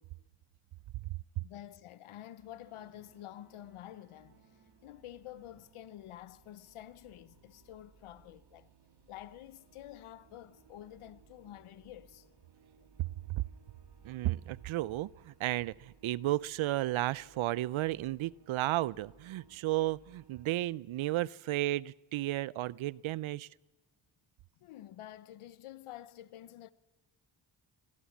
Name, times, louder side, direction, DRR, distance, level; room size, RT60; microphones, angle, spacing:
voice 1, 1.4-4.5 4.8-8.7 9.1-12.3 12.8-12.9 24.6-26.7, left 12 dB, 80° left, 0.9 m, -49 dB
sound 1, 2.4-20.8, right 5 dB, 55° right, 2.6 m, -63 dB
voice 2, 14.0-23.5, right 16 dB, 75° right, 0.6 m, -33 dB
23.5 x 15.0 x 7.3 m
supercardioid pair, 45°, 49 cm